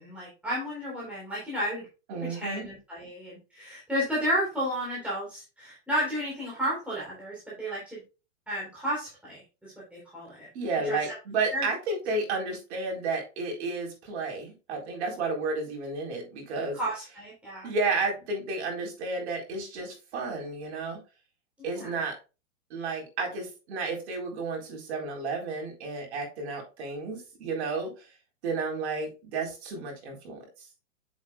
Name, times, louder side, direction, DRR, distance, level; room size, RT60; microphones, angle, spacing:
voice 1, 0.0-1.8 2.2-8.0 8.5-10.5 10.8-11.1 11.5-11.7 16.7-17.7 21.6-22.0, equal, 5° right, -7 dB, 3.6 m, -32 dB
voice 2, 2.1-2.7 10.5-16.8 17.6-21.0 21.6-22.2 22.7-27.9 28.4-30.4, right 3 dB, 55° right, 1 dB, 4.2 m, -32 dB
8.5 x 7.4 x 2.3 m, 0.30 s
hypercardioid pair, 135°, 38 cm